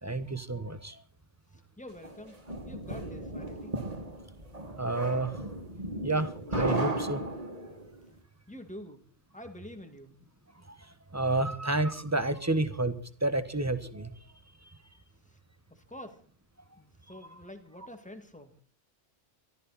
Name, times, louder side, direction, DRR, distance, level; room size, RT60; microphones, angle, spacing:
voice 1, 0.0-1.0 4.8-5.4 6.0-7.3 10.7-10.8 11.1-14.1, right 2 dB, 15° right, 11 dB, 1.2 m, -30 dB
voice 2, 1.5-2.4 2.7-3.8 8.5-9.0 9.3-10.2 15.3-15.4 15.7-16.2 16.8-18.5, left 1 dB, 5° left, 7 dB, 2.2 m, -47 dB
sound 1, 2.0-7.9, right 2 dB, 30° right, 2.5 m, -35 dB
24.0 x 14.0 x 4.2 m, 0.43 s
omnidirectional pair, 1.2 m